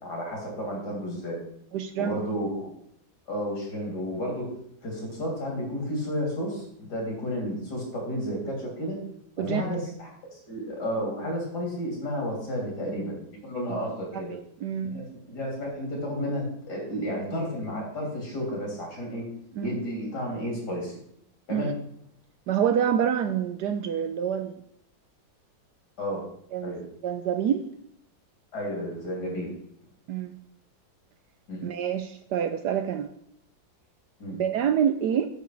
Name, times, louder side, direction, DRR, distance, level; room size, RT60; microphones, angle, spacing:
voice 1, 0.0-1.4 2.0-2.7 3.3-4.5 4.8-9.0 9.4-14.3 14.8-19.2 19.6-21.0 21.5-21.7 26.0-26.2 26.6-26.8 28.5-29.5 31.5-31.6 34.2-34.3, equal, 55° left, -1 dB, 3.7 m, -32 dB
voice 2, 1.7-2.2 9.4-9.9 13.7-13.8 14.1-15.0 19.6-19.8 21.5-21.7 22.5-24.6 26.5-26.7 27.0-27.6 30.1-30.3 31.6-33.1 34.3-35.3, right 8 dB, 70° right, 9 dB, 1.1 m, -27 dB
9.1 x 7.0 x 4.6 m, 0.72 s
omnidirectional pair, 2.1 m